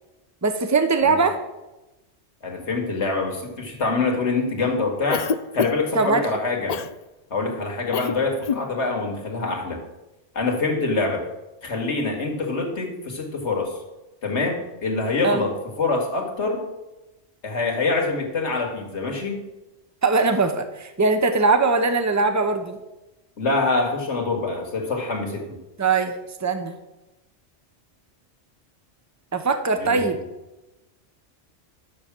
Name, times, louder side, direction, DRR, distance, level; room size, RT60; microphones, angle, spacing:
voice 1, 0.4-1.4 5.9-6.3 15.2-15.5 20.0-22.8 25.8-26.8 29.3-30.2, right 4 dB, 15° right, 8 dB, 0.9 m, -21 dB
voice 2, 2.4-5.3 5.5-6.8 7.3-9.8 10.3-11.2 11.6-13.7 14.2-16.7 17.4-19.4 23.4-25.4 29.8-30.0, left 3 dB, 70° left, 2 dB, 2.3 m, -25 dB
Cough, 5.1-6.0 6.7-6.9 7.9-8.2 8.4-8.7, left 6 dB, 55° left, 0.4 m, -25 dB
12.0 x 7.2 x 6.1 m, 1.0 s
omnidirectional pair, 1.2 m